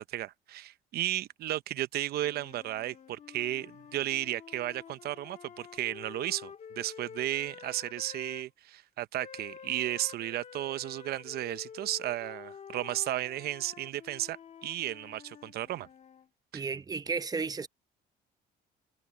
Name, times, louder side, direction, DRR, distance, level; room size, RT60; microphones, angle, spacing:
voice 1, 0.0-15.9 16.5-16.6, right 14 dB, 70° right, 0.8 m, -34 dB
sound 1, 2.2-8.5 9.2-16.3, left 7 dB, 45° left, 1.6 m, -49 dB
voice 2, 16.5-17.7, right 4 dB, 20° right, 0.9 m, -33 dB
cardioid pair, 110°, 17 cm